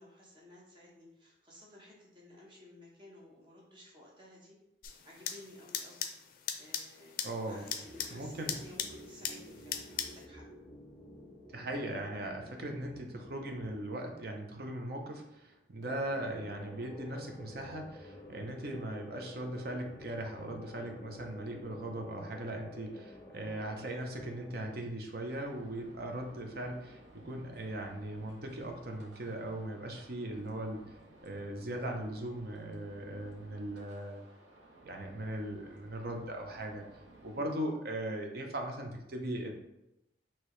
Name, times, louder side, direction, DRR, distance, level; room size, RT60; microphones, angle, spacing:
voice 1, 0.0-4.6 5.0-6.0 6.6-10.4, left 1 dB, 25° right, -4 dB, 1.1 m, -55 dB
sound 1, 4.8-10.2, left 8 dB, 55° left, 0.4 m, -40 dB
voice 2, 7.2-7.7 8.1-8.6 11.5-30.8 31.2-34.2 34.8-36.9 37.2-39.5, right 1 dB, 60° right, 3 dB, 0.7 m, -39 dB
sound 2, 7.8-13.8 15.8-24.7, left 1 dB, 20° left, 0.7 m, -51 dB
sound 3, 25.3-37.4, right 1 dB, 90° right, 0.9 m, -57 dB
4.6 x 2.9 x 3.1 m, 0.91 s
head